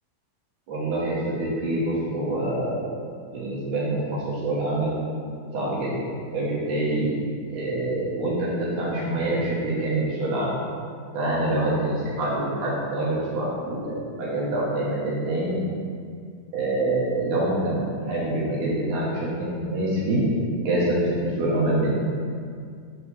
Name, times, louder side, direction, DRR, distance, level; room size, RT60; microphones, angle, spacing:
voice 1, 0.7-2.8 3.3-4.9 5.5-7.1 7.5-10.6 11.1-15.5 16.5-20.2 20.6-21.9, right 1 dB, 65° right, -6 dB, 2.3 m, -26 dB
11.0 x 4.7 x 3.3 m, 2.2 s
omnidirectional pair, 4.3 m